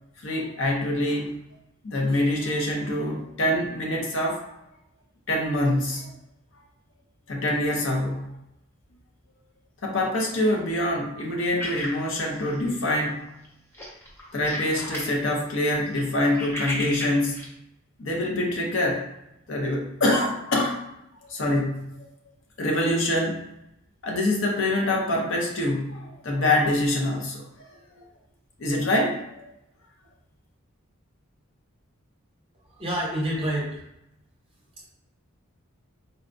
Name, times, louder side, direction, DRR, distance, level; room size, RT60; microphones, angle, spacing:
voice 1, 0.2-1.3 1.8-4.5 5.3-6.1 7.3-8.3 9.8-13.2 14.3-17.4 18.0-19.0 19.5-20.8 21.2-22.1 22.6-23.5 24.0-27.4 27.9-28.0 28.6-29.5, left 1 dB, 60° left, -1 dB, 0.6 m, -25 dB
sound 1, 11.6-13.0 13.3-13.5 13.7-15.1 15.5-17.5, left 1 dB, 10° left, 0.5 m, -35 dB
voice 2, 32.7-33.8 34.8-34.9, equal, 25° right, -4 dB, 0.7 m, -28 dB
4.0 x 2.2 x 2.5 m, 0.85 s
head